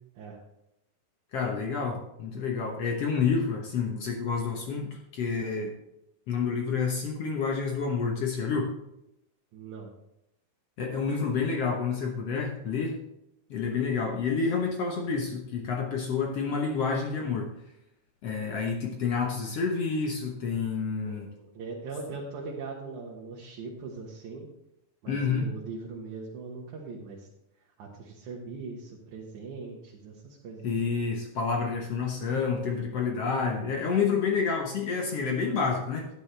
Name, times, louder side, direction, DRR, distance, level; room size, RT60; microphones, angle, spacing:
voice 1, 1.3-5.7 6.3-8.7 10.8-13.0 13.5-17.5 18.2-21.3 25.1-25.4 30.6-36.1, left 5 dB, 65° left, 1 dB, 1.6 m, -29 dB
voice 2, 9.5-9.9 21.0-24.5 25.0-27.3 27.8-30.9, right 4 dB, 65° right, -3 dB, 2.6 m, -40 dB
11.5 x 10.5 x 3.3 m, 0.83 s
omnidirectional pair, 4.1 m